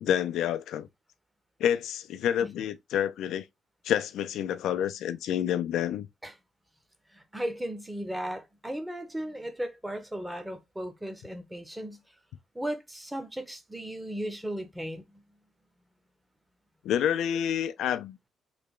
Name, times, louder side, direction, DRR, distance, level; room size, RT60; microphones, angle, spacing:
voice 1, 0.0-0.9 1.6-3.4 3.8-6.1 16.8-18.2, left 10 dB, 80° left, 0.4 m, -28 dB
voice 2, 7.1-12.0 12.5-15.2, right 1 dB, 10° right, 0.8 m, -36 dB
3.4 x 2.2 x 3.6 m
cardioid pair, 90°, 0 cm